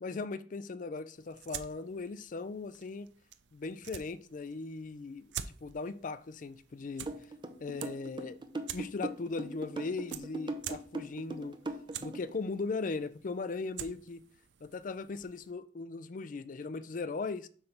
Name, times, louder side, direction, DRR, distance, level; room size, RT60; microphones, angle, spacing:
voice 1, 0.0-3.1 3.5-5.3 5.6-7.1 7.6-8.4 8.7-11.5 12.0-14.2 14.6-17.5, left 3 dB, 50° left, 0.4 m, -38 dB
sound 1, 1.1-15.5, right 10 dB, 80° right, 0.5 m, -48 dB
sound 2, 7.1-12.3, right 2 dB, 25° right, 0.7 m, -39 dB
7.7 x 3.4 x 5.8 m
head